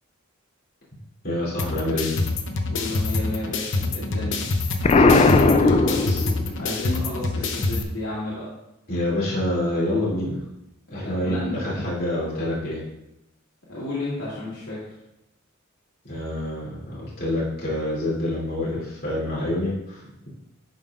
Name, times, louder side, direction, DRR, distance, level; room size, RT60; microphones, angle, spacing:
voice 1, 1.2-2.2 4.8-6.2 8.9-10.4 10.9-12.8 16.0-20.0, left 1 dB, 50° left, -7 dB, 2.8 m, -27 dB
sound 1, 1.6-7.8, left 3 dB, 65° left, 0.8 m, -26 dB
voice 2, 2.7-4.4 6.6-8.5 10.9-11.6 13.7-14.8, left 1 dB, 85° left, -10 dB, 2.2 m, -32 dB
Explosion, 4.8-6.7, left 3 dB, 30° left, 0.3 m, -17 dB
11.0 x 5.4 x 2.4 m, 0.89 s
head